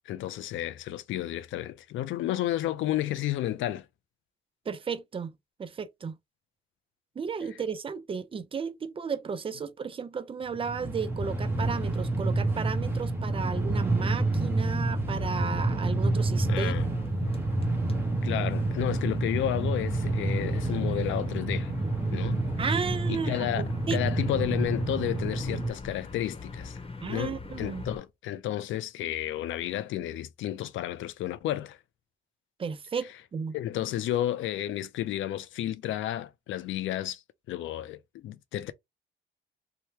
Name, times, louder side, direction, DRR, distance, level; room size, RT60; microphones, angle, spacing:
voice 1, 0.1-3.9 16.5-16.9 18.2-21.7 22.1-22.4 23.1-23.6 23.9-26.8 27.1-31.8 33.5-37.2 37.5-38.7, left 13 dB, 75° left, 0.5 m, -32 dB
voice 2, 4.7-5.3 5.6-6.2 7.2-16.7 22.6-23.5 23.9-24.0 24.3-24.4 27.0-27.8 32.6-33.6, right 5 dB, 25° right, 0.5 m, -34 dB
Train, 10.5-25.7, right 2 dB, 10° right, 0.8 m, -28 dB
sound 1, 16.4-28.0, left 3 dB, 30° left, 1.0 m, -45 dB
2.9 x 2.1 x 3.1 m
cardioid pair, 90°, 20 cm